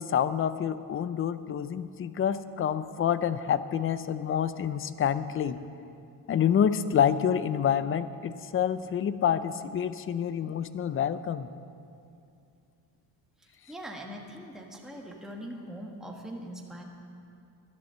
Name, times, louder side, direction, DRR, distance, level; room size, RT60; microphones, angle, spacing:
voice 1, 0.0-5.6 6.3-11.5, left 8 dB, 35° left, 14 dB, 0.5 m, -27 dB
voice 2, 13.4-16.8, equal, ahead, 0 dB, 1.3 m, -42 dB
12.0 x 11.0 x 6.8 m, 2.5 s
cardioid pair, 125°, 40 cm